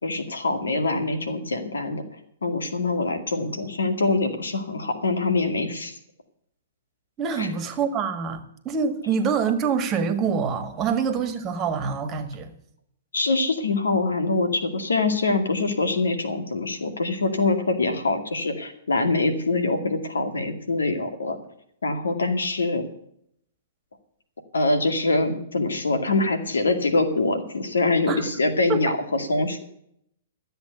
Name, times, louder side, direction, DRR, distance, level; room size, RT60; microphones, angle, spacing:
voice 1, 0.0-2.0 2.4-5.9 7.4-7.5 13.1-21.4 21.8-22.8 24.5-29.7, left 3 dB, 85° left, 7 dB, 2.2 m, -24 dB
voice 2, 7.2-12.5 28.1-28.3 28.7-28.9, right 6 dB, 30° right, 9 dB, 1.7 m, -26 dB
13.0 x 8.0 x 8.0 m, 0.71 s
hypercardioid pair, 120°, 0 cm